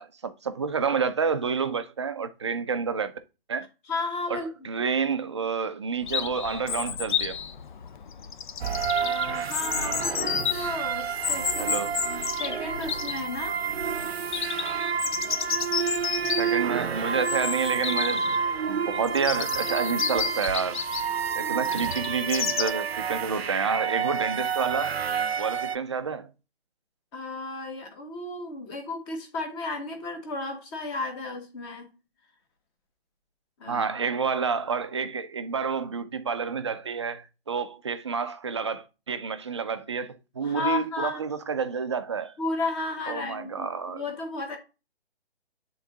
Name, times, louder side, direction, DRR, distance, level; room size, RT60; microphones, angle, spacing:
voice 1, 0.0-3.1 3.5-3.7 4.3-7.4 11.6-12.0 16.4-18.3 18.7-20.8 21.4-25.0 25.4-26.3 33.7-42.3 43.1-44.0, right 5 dB, 30° right, 0.4 m, -29 dB
voice 2, 3.9-4.7 9.0-13.6 27.1-31.9 33.6-33.9 40.4-41.2 42.4-43.7 43.9-44.6, left 3 dB, 25° left, 1.4 m, -33 dB
Chirp tweet, 6.1-22.7, left 7 dB, 50° left, 0.6 m, -32 dB
sound 1, 8.6-25.8, right 6 dB, 75° right, 0.6 m, -30 dB
9.5 x 3.8 x 2.7 m
figure-of-eight pair, 145°, 31 cm